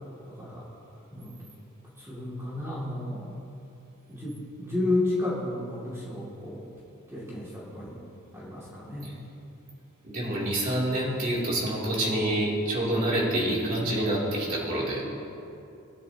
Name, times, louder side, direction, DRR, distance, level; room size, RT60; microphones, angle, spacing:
voice 1, 0.2-0.6 1.1-1.5 2.0-3.4 4.1-6.7 7.1-8.1 8.3-9.1, left 2 dB, 15° right, -8 dB, 2.6 m, -32 dB
voice 2, 10.0-15.0, right 1 dB, 40° right, -5 dB, 3.2 m, -27 dB
21.0 x 11.0 x 3.0 m, 2.8 s
head